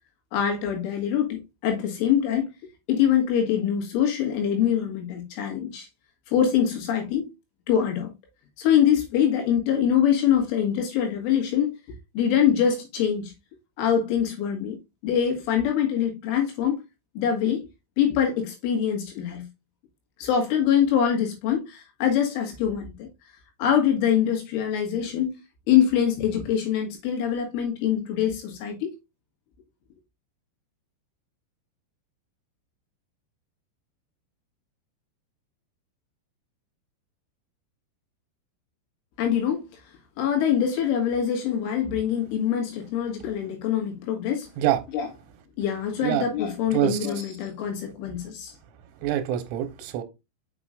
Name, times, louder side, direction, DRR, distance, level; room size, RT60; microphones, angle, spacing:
voice 1, 0.3-2.5 2.9-5.9 6.3-7.3 7.7-8.1 8.6-11.7 12.2-13.3 13.8-16.8 17.2-17.7 18.0-19.5 20.2-23.1 23.6-25.4 25.7-28.9 39.2-39.7 40.2-44.5 44.9-45.1 45.6-48.5, left 9 dB, 80° left, 4.1 m, -24 dB
voice 2, 49.0-50.0, right 12 dB, 85° right, 3.4 m, -25 dB
7.0 x 5.9 x 2.4 m
omnidirectional pair, 5.6 m